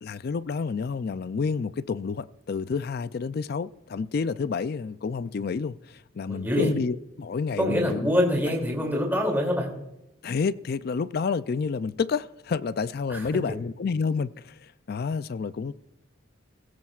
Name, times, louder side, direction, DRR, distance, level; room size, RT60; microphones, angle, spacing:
voice 1, 0.0-8.1 10.2-14.6 14.9-15.7, left 5 dB, 50° left, 0.4 m, -29 dB
voice 2, 6.3-6.7 7.6-9.7 13.1-13.3, equal, 10° right, 2.6 m, -25 dB
20.0 x 16.5 x 2.4 m
head